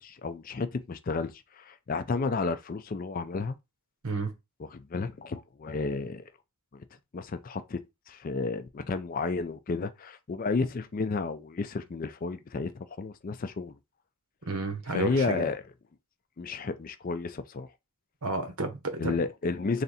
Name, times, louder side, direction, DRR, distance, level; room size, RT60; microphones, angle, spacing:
voice 1, 0.0-3.6 4.7-6.3 6.7-6.8 7.1-7.8 8.1-13.8 14.9-15.6 16.4-17.7 19.0-19.8, left 4 dB, 40° left, 0.4 m, -32 dB
voice 2, 14.5-15.4 18.2-19.2, right 3 dB, 85° right, 1.0 m, -31 dB
3.3 x 2.7 x 4.0 m
head